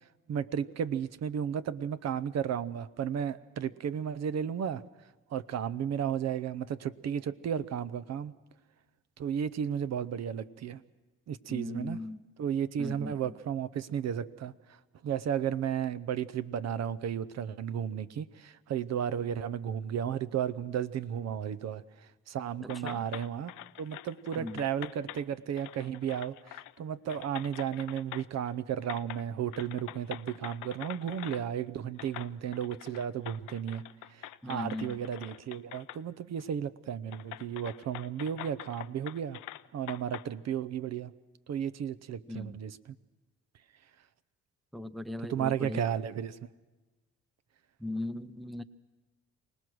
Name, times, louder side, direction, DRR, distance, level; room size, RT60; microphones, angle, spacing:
voice 1, 0.3-4.8 5.3-8.3 9.2-10.8 11.3-12.0 12.4-14.8 15.0-23.5 23.8-33.8 34.1-39.4 39.7-41.1 41.5-42.9 45.3-46.4, right 8 dB, 60° right, 15 dB, 0.7 m, -34 dB
voice 2, 11.5-12.2 12.8-13.2 22.6-23.1 24.4-24.6 34.4-35.0 42.3-42.6 44.7-45.8 47.8-48.6, left 2 dB, ahead, 14 dB, 0.6 m, -38 dB
sound 1, 22.7-25.2 25.6-26.8 27.1-28.5 28.8-29.2 29.5-31.4 32.0-36.0 36.4-36.5 37.1-40.3, left 16 dB, 85° left, 0.6 m, -45 dB
25.0 x 18.5 x 6.2 m, 1.2 s
cardioid pair, 90°, 30 cm